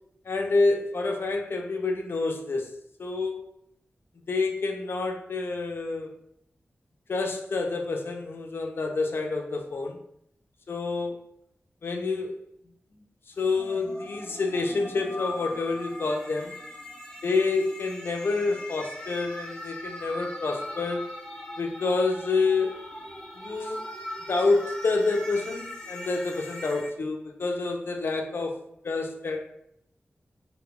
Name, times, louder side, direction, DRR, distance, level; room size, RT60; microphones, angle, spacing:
voice 1, 0.3-2.7 3.0-3.4 4.3-6.1 7.1-10.0 10.7-11.2 11.8-12.3 13.4-16.5 17.2-21.1 21.6-22.8 23.4-23.8 24.3-29.5, left 3 dB, 65° left, 3 dB, 0.4 m, -28 dB
sound 1, 13.4-26.9, left 1 dB, 15° left, 0.6 m, -40 dB
2.2 x 2.1 x 3.6 m, 0.74 s
wide cardioid pair, 75°, 4 cm